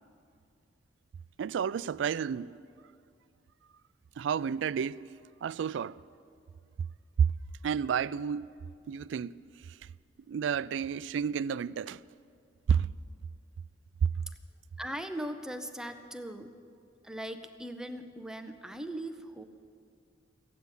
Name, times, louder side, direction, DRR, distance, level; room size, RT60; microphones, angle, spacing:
voice 1, 1.4-2.6 4.2-5.0 5.4-6.0 7.2-7.3 7.6-8.5 8.9-9.4 10.3-12.0 12.7-12.9, right 7 dB, 80° right, 0.3 m, -30 dB
voice 2, 14.8-16.5 17.0-19.4, right 1 dB, 5° right, 0.6 m, -39 dB
15.0 x 8.2 x 9.6 m
head